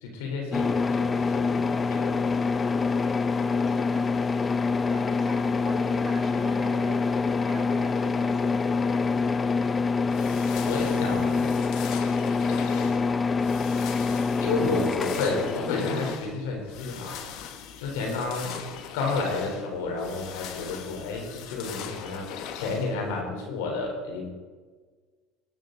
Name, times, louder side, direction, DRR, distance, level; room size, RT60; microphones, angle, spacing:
voice 1, 0.0-2.2 10.7-11.5 14.4-17.2 17.8-18.5 18.9-22.2 22.5-24.3, left 3 dB, 80° left, 1 dB, 4.0 m, -31 dB
sound 1, 0.5-16.2, left 4 dB, 25° left, 0.6 m, -26 dB
voice 2, 3.4-4.3 4.9-8.7 18.0-18.3, right 1 dB, 15° right, -3 dB, 4.1 m, -40 dB
sound 2, 10.0-23.2, left 8 dB, 65° left, 1.4 m, -40 dB
20.0 x 9.4 x 4.0 m, 1.4 s
supercardioid pair, 100°, 0 cm